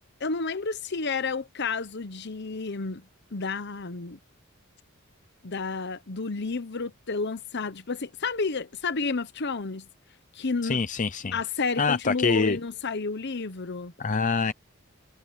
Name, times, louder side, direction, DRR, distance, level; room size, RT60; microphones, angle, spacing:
voice 1, 0.2-3.0 3.3-4.2 5.4-9.9 10.3-10.8 11.3-13.9, left 4 dB, 55° left, 1.0 m, -31 dB
voice 2, 10.6-11.3 11.8-12.6 14.0-14.5, left 4 dB, 35° left, 0.6 m, -25 dB
head